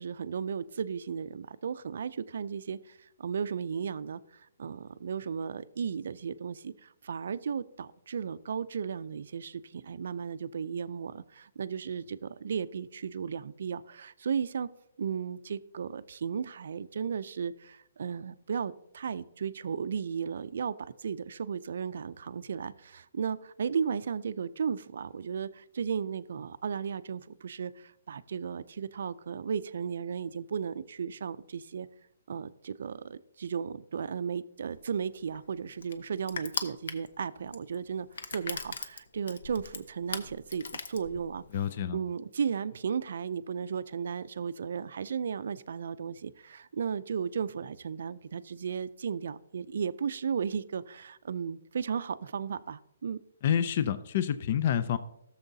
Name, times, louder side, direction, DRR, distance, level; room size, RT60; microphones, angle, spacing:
voice 1, 0.0-14.7 15.0-31.9 32.3-41.4 41.9-53.2, right 6 dB, 65° right, 15 dB, 0.4 m, -35 dB
Crushing, 34.8-41.6, left 5 dB, 65° left, 0.8 m, -40 dB
voice 2, 41.5-42.0 53.4-55.0, left 9 dB, 40° left, 12 dB, 0.4 m, -28 dB
14.5 x 7.0 x 2.7 m, 0.81 s
hypercardioid pair, 165°, 0 cm